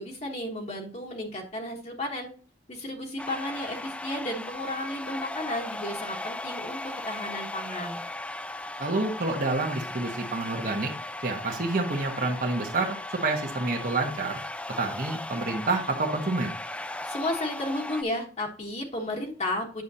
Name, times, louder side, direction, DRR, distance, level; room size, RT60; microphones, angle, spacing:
voice 1, 0.0-2.3 2.7-8.0 17.0-19.8, left 1 dB, 40° left, 0 dB, 1.3 m, -33 dB
sound 1, 3.2-18.0, left 1 dB, 5° left, 0.4 m, -37 dB
voice 2, 8.8-10.9 11.2-14.4 14.8-16.5, right 2 dB, 50° right, 1 dB, 1.3 m, -28 dB
9.2 x 6.7 x 2.8 m, 0.39 s
head